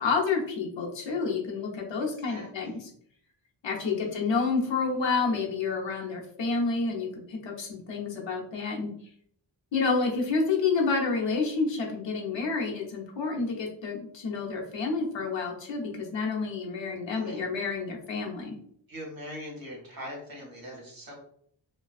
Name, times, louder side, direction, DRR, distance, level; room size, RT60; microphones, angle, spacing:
voice 1, 0.0-2.7 3.6-8.9 9.7-18.6, left 4 dB, 70° left, -1 dB, 0.7 m, -29 dB
voice 2, 2.2-2.8 3.8-4.2 8.0-8.1 17.1-17.4 18.9-21.1, equal, 50° right, -3 dB, 0.9 m, -42 dB
2.3 x 2.2 x 2.4 m, 0.64 s
wide cardioid pair, 120°, 46 cm